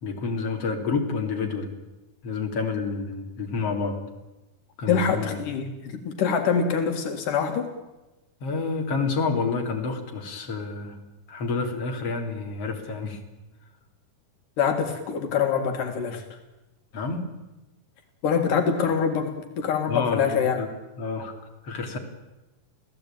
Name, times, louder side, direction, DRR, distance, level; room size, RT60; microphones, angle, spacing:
voice 1, 0.0-1.7 2.2-4.0 4.8-5.3 8.4-11.0 11.3-13.2 16.9-17.3 19.9-20.7 21.0-21.3 21.6-22.0, left 4 dB, 45° left, 2 dB, 4.2 m, -29 dB
voice 2, 4.9-7.7 14.6-16.2 18.2-19.3 19.6-20.6, left 6 dB, 80° left, 4 dB, 3.6 m, -24 dB
27.5 x 16.5 x 9.1 m, 1.0 s
omnidirectional pair, 3.7 m